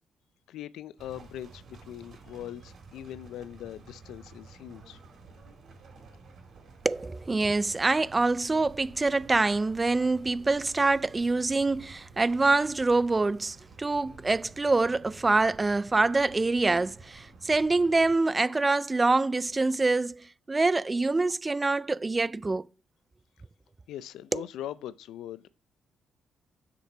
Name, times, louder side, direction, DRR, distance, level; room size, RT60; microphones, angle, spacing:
voice 1, 0.5-5.0 23.9-25.5, left 12 dB, 85° left, 0.4 m, -41 dB
sound 1, 1.0-18.2, right 4 dB, 60° right, 3.2 m, -51 dB
voice 2, 6.8-22.7 24.3-24.4, right 3 dB, 20° right, 0.3 m, -25 dB
7.3 x 6.7 x 5.5 m
cardioid pair, 90°, 0 cm